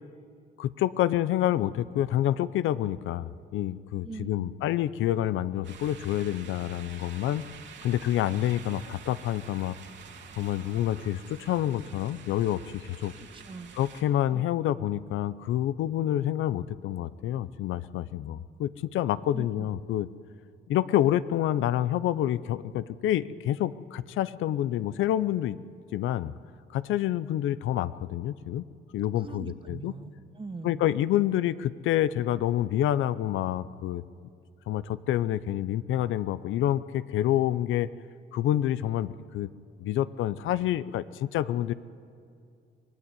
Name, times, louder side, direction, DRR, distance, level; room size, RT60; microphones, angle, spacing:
voice 1, 0.6-7.4 7.8-9.8 10.4-13.1 13.7-20.1 20.7-25.6 25.9-26.3 26.7-28.7 28.9-29.9 30.6-34.0 34.7-37.9 38.3-39.5 39.8-41.7, left 12 dB, 85° left, 16 dB, 0.7 m, -28 dB
voice 2, 4.0-4.5 13.2-13.8 14.3-14.4 19.3-19.5 29.2-30.9, right 3 dB, 25° right, 8 dB, 1.8 m, -41 dB
sound 1, 5.6-14.0, right 6 dB, 65° right, 2.9 m, -48 dB
25.0 x 18.0 x 9.8 m, 2.4 s
cardioid pair, 90°, 20 cm